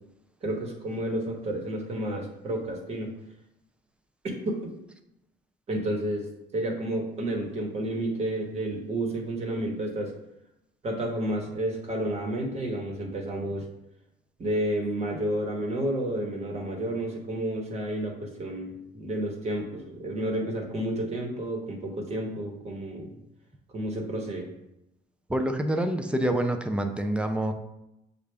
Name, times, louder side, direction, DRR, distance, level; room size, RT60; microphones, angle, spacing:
voice 1, 0.4-3.1 4.2-4.6 5.7-6.3 6.5-10.1 10.8-13.7 14.4-23.2 23.7-24.5, right 1 dB, 40° right, 1 dB, 1.1 m, -31 dB
voice 2, 25.3-27.5, right 1 dB, 5° right, 6 dB, 0.4 m, -27 dB
6.6 x 2.4 x 3.3 m, 0.86 s
cardioid pair, 110°, 17 cm